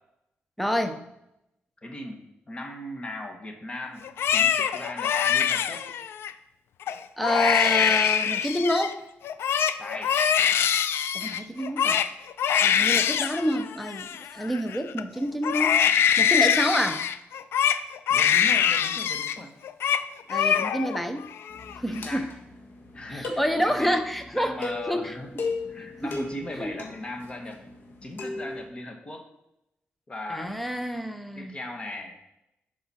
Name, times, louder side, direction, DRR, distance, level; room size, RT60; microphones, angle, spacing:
voice 1, 0.6-1.0 7.2-9.0 11.1-12.0 12.6-15.8 16.2-17.1 20.3-21.3 21.8-22.3 23.1-25.4 26.0-26.3 26.6-26.7 30.3-31.6, equal, ahead, 7 dB, 0.7 m, -28 dB
voice 2, 1.8-5.9 9.8-10.2 18.1-19.5 21.9-22.3 22.9-24.0 24.3-25.3 25.7-27.6 28.0-29.3 30.1-30.6 31.3-32.1, left 1 dB, 25° left, 4 dB, 1.3 m, -38 dB
Crying sobbing, 4.0-6.3 6.8-7.0 7.2-8.9 9.2-15.0 15.4-19.4 19.6-20.0 20.3-21.0 21.4-22.0, left 8 dB, 80° left, 0.4 m, -24 dB
sound 1, 21.5-28.6, left 3 dB, 55° left, 1.5 m, -37 dB
11.0 x 4.8 x 4.3 m, 0.85 s
wide cardioid pair, 130°, 4 cm